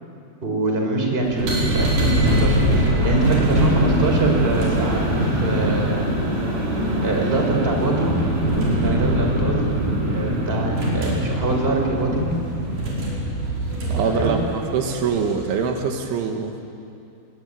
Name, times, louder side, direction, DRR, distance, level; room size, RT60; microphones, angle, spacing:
voice 1, 0.4-5.0 5.4-6.0 7.0-8.2 8.6-9.6 10.1-12.4 14.2-14.4, right 2 dB, 10° right, 1 dB, 4.2 m, -24 dB
sound 1, 1.2-15.6, equal, 45° right, 6.5 m, -22 dB
voice 2, 13.9-16.5, right 6 dB, 80° right, 3 dB, 4.1 m, -24 dB
26.0 x 20.5 x 9.1 m, 2.5 s
omnidirectional pair, 5.5 m